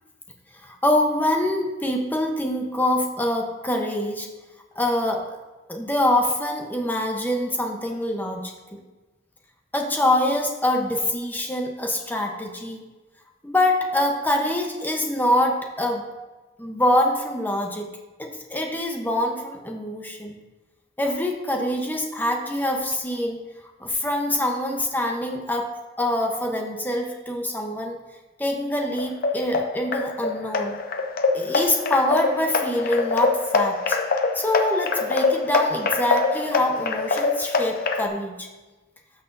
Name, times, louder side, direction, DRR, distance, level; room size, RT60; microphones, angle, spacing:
voice 1, 0.6-4.3 4.8-5.4 5.7-8.5 9.7-12.8 13.4-16.0 16.6-17.9 18.2-20.4 21.0-23.4 23.8-25.7 26.0-28.0 28.4-30.7 31.3-34.0 34.3-38.5, left 1 dB, 10° left, 2 dB, 0.9 m, -25 dB
sound 1, 29.0-38.1, left 4 dB, 55° left, 0.6 m, -24 dB
12.5 x 6.1 x 2.7 m, 1.2 s
head